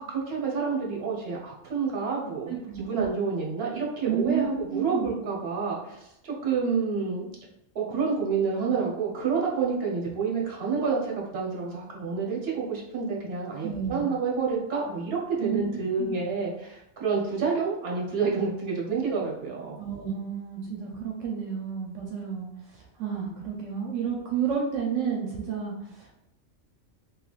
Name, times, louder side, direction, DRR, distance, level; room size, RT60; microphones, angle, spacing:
voice 1, 0.0-7.3 7.7-19.8, right 5 dB, 55° right, -2 dB, 1.1 m, -29 dB
voice 2, 2.5-3.1 4.0-5.1 13.6-14.0 15.4-15.6 16.0-16.2 19.8-22.5 22.7-26.1, right 7 dB, 80° right, -2 dB, 0.9 m, -31 dB
3.2 x 2.9 x 2.3 m, 0.82 s
omnidirectional pair, 1.3 m